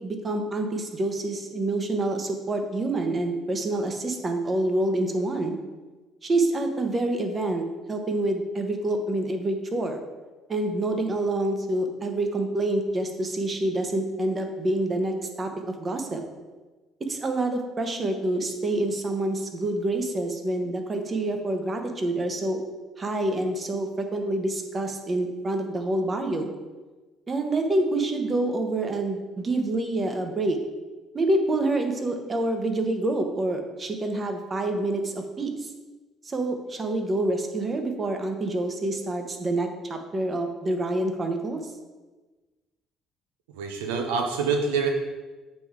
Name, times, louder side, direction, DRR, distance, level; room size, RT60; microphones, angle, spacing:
voice 1, 0.0-5.6 6.2-10.0 10.5-16.2 17.1-22.6 23.0-26.5 27.3-30.6 31.1-35.7 36.2-41.6, right 2 dB, 35° right, 5 dB, 1.1 m, -27 dB
voice 2, 43.5-44.9, right 5 dB, 85° right, 3 dB, 0.5 m, -26 dB
7.6 x 3.6 x 4.7 m, 1.3 s
hypercardioid pair, 60°, 0 cm